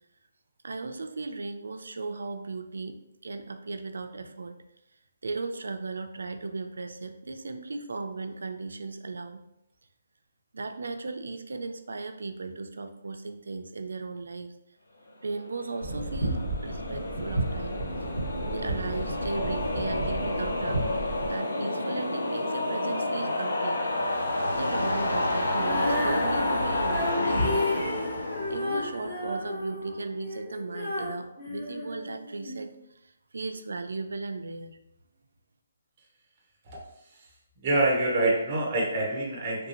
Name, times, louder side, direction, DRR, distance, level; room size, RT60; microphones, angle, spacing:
voice 1, 0.6-3.0 3.2-4.6 5.2-9.4 10.5-14.5 15.2-17.8 18.3-21.0 21.3-23.8 24.5-27.9 28.5-32.7 33.0-34.8, right 3 dB, 85° right, 7 dB, 0.4 m, -36 dB
sound 1, 15.4-29.7, left 2 dB, 75° left, 0.6 m, -30 dB
sound 2, 15.8-21.3, right 2 dB, 40° left, 1.2 m, -33 dB
Female singing, 25.6-32.6, left 1 dB, 25° left, 0.8 m, -33 dB
voice 2, 37.6-39.7, right 2 dB, 15° right, -3 dB, 0.5 m, -26 dB
3.2 x 2.6 x 2.8 m, 0.84 s
hypercardioid pair, 180°, 0 cm